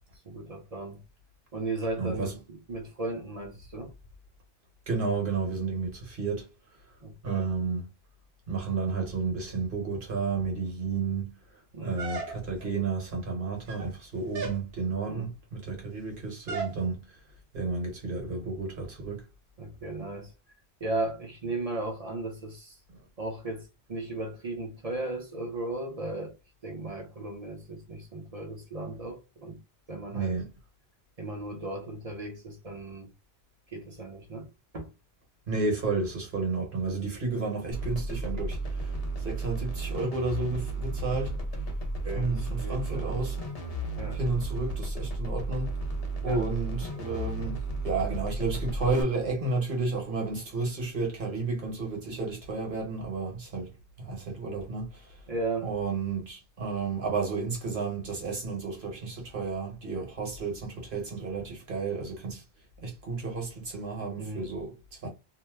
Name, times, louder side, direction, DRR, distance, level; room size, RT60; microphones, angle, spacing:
voice 1, 0.3-1.0 1.5-3.9 7.0-7.4 11.7-12.0 15.1-15.3 19.6-20.3 20.8-22.8 23.2-26.3 26.6-29.6 29.9-30.4 31.2-33.1 33.7-34.9 42.0-43.2 44.0-44.2 46.3-46.5 55.3-55.7 64.2-64.5, right 2 dB, 40° right, 0.8 m, -36 dB
voice 2, 2.0-2.4 4.9-6.5 7.2-7.9 8.5-11.3 11.8-17.0 17.5-19.2 30.1-30.5 35.5-38.9 39.2-41.4 42.1-43.4 44.1-45.7 46.2-55.2 55.6-62.4 62.8-65.1, right 4 dB, 55° right, 1.3 m, -32 dB
sound 1, 12.0-12.7 13.5-14.0 14.3-14.7 16.5-16.8, right 3 dB, 75° right, 0.9 m, -36 dB
sound 2, 37.7-49.0, right 2 dB, 40° left, 0.9 m, -33 dB
2.8 x 2.1 x 3.4 m
omnidirectional pair, 1.1 m